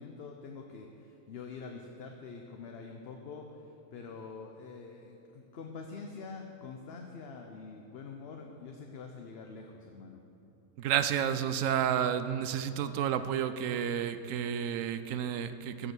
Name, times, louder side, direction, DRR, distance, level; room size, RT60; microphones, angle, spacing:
voice 1, 0.0-3.5 3.9-10.2, left 4 dB, 55° left, 2 dB, 0.9 m, -45 dB
voice 2, 10.8-15.9, right 9 dB, 80° right, 11 dB, 1.0 m, -31 dB
15.5 x 5.5 x 6.1 m, 2.8 s
omnidirectional pair, 1.4 m